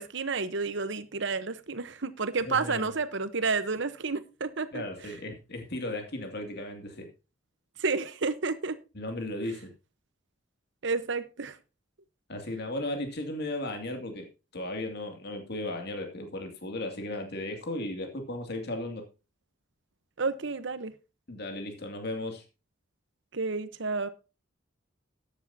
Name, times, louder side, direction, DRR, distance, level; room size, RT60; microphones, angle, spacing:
voice 1, 0.0-4.8 7.8-8.8 10.8-11.6 20.2-20.9 23.3-24.1, right 4 dB, 65° right, 1.0 m, -30 dB
voice 2, 2.4-2.9 4.7-7.1 8.9-9.7 12.3-14.3 14.5-19.0 21.3-22.4, left 1 dB, 55° left, 2.4 m, -35 dB
13.5 x 9.9 x 2.8 m
head